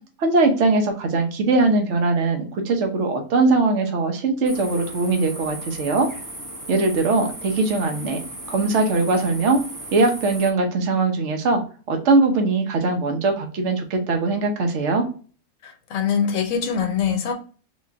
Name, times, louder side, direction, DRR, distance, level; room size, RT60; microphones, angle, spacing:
voice 1, 0.2-6.1 6.7-8.2 8.5-9.6 9.9-11.6 11.9-15.1, right 3 dB, 50° right, 4 dB, 1.1 m, -21 dB
sound 1, 4.5-10.5, right 1 dB, 15° right, 0.8 m, -36 dB
voice 2, 15.6-17.3, left 7 dB, 60° left, 4 dB, 1.2 m, -23 dB
4.0 x 3.2 x 3.5 m, 0.39 s
omnidirectional pair, 1.8 m